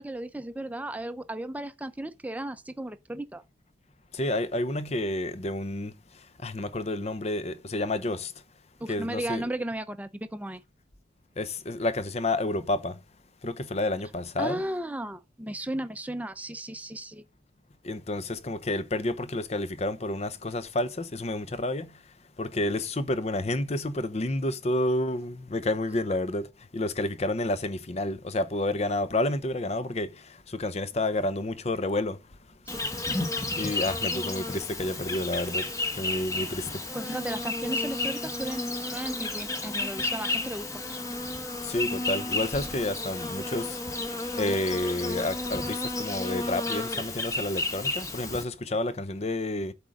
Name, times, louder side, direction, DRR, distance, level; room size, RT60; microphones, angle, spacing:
voice 1, 0.0-3.4 8.8-10.6 14.4-17.2 32.7-32.9 36.9-40.8, right 1 dB, 10° right, 0.7 m, -35 dB
voice 2, 4.1-5.9 6.4-8.3 8.9-9.5 11.4-13.0 13.4-14.6 17.8-21.9 22.4-26.5 26.7-32.2 33.6-35.7 36.0-36.8 41.6-49.7, left 1 dB, 35° left, 0.7 m, -30 dB
Insect, 32.7-48.4, left 2 dB, 20° left, 1.2 m, -32 dB
8.2 x 3.6 x 6.4 m
head